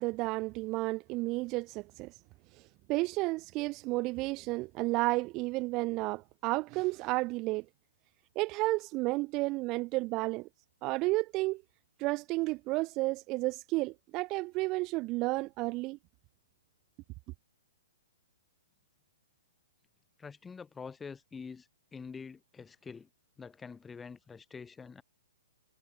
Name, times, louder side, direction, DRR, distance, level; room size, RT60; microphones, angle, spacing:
voice 1, 0.0-2.1 2.9-7.6 8.3-10.5 10.8-11.6 12.0-16.0, right 22 dB, 35° right, 1.0 m, -32 dB
voice 2, 20.2-23.1 23.4-25.0, left 5 dB, 10° left, 2.9 m, -46 dB
hypercardioid pair, 135°, 0 cm